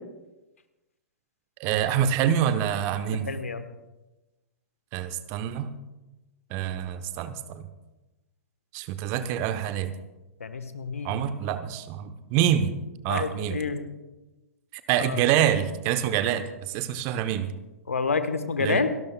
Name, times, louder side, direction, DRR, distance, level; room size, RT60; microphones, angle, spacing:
voice 1, 1.6-3.3 4.9-5.7 6.5-7.7 8.7-9.9 11.0-12.7 13.0-13.6 14.7-17.5 18.6-18.8, right 10 dB, 35° right, 11 dB, 0.9 m, -26 dB
voice 2, 3.3-3.6 10.4-11.2 13.1-13.9 15.0-15.2 17.9-18.9, left 4 dB, 70° left, 10 dB, 1.3 m, -28 dB
29.0 x 12.0 x 2.3 m, 1.1 s
figure-of-eight pair, 105°, 8 cm